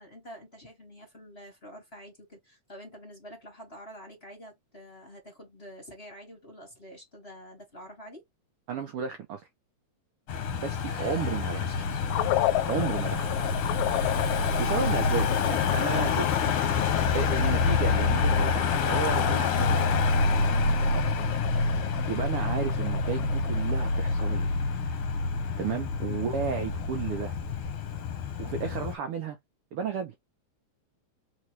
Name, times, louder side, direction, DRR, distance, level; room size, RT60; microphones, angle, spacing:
voice 1, 0.0-8.2 10.9-12.0 20.8-21.0 21.9-22.2 26.1-26.3 28.4-28.6, equal, 25° left, 1.7 m, -47 dB
voice 2, 8.7-9.4 10.5-11.7 12.7-13.3 14.4-16.3 17.1-19.9 20.9-21.1 21.9-24.5 25.6-27.3 28.4-29.4 29.7-30.1, right 7 dB, 70° right, 1.4 m, -33 dB
Car passing by / Engine, 10.3-29.0, left 4 dB, 60° left, 1.7 m, -27 dB
sound 1, 12.1-24.4, left 15 dB, 80° left, 1.9 m, -34 dB
4.2 x 3.8 x 3.1 m
omnidirectional pair, 3.3 m